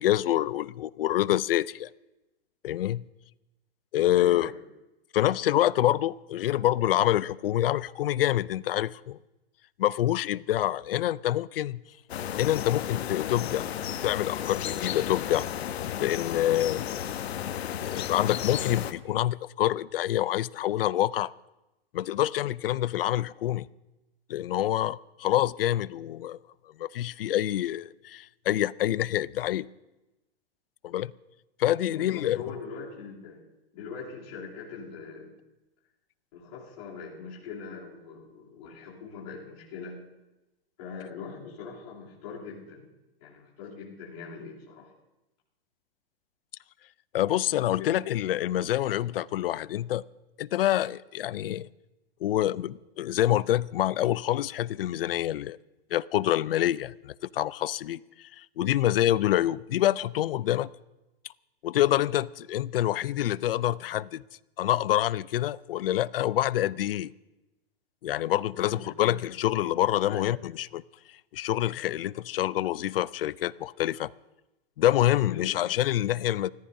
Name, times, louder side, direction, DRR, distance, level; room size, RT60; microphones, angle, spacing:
voice 1, 0.0-1.9 2.6-3.0 3.9-4.5 5.1-9.2 9.8-11.8 12.4-13.7 14.0-15.5 16.0-16.8 17.8-21.3 21.9-23.7 24.3-26.4 26.8-29.7 30.8-31.1 31.6-32.4 47.1-50.0 50.4-51.7 52.2-55.6 55.9-60.7 61.6-64.2 64.6-67.1 68.0-70.8 71.3-74.1 74.8-76.5, left 13 dB, 65° left, 0.5 m, -26 dB
voice 2, 4.1-4.6 31.8-33.4 33.7-35.3 36.3-40.0 40.8-42.9 43.2-44.9 47.7-48.0 68.5-69.1 70.0-70.3 75.3-75.7, left 5 dB, 40° left, 3.0 m, -41 dB
sound 1, 12.1-18.9, left 10 dB, 85° left, 1.0 m, -33 dB
29.5 x 14.5 x 2.7 m
supercardioid pair, 180°, 31 cm